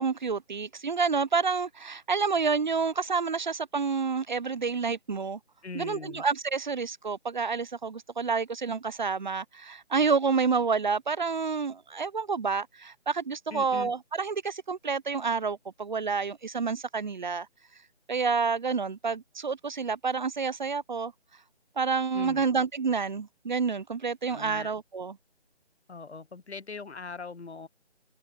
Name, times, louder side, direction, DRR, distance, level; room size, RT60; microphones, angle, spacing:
voice 1, 0.0-5.4 5.7-17.5 18.1-21.1 21.8-25.2, right 5 dB, 45° right, 0.7 m, -29 dB
voice 2, 5.6-6.2 13.5-13.9 22.1-22.5 24.3-24.7 25.9-27.7, left 4 dB, 80° left, 1.3 m, -41 dB
open air
figure-of-eight pair, 160°, 33 cm